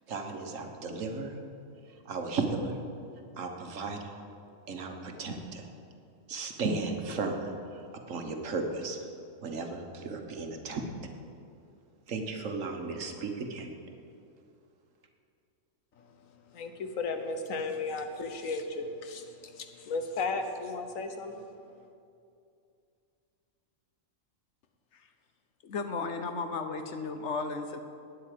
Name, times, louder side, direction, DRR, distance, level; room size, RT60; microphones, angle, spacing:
voice 1, 0.1-1.4 2.0-2.8 3.4-4.2 4.7-5.7 6.3-7.8 8.1-9.0 9.4-10.8 12.1-13.7, right 3 dB, 70° right, 4 dB, 1.5 m, -35 dB
voice 2, 16.0-21.5 21.8-21.9, left 3 dB, 80° left, 6 dB, 1.4 m, -35 dB
voice 3, 25.6-27.8, left 4 dB, 60° left, 7 dB, 1.1 m, -34 dB
9.4 x 8.2 x 9.1 m, 2.5 s
omnidirectional pair, 1.4 m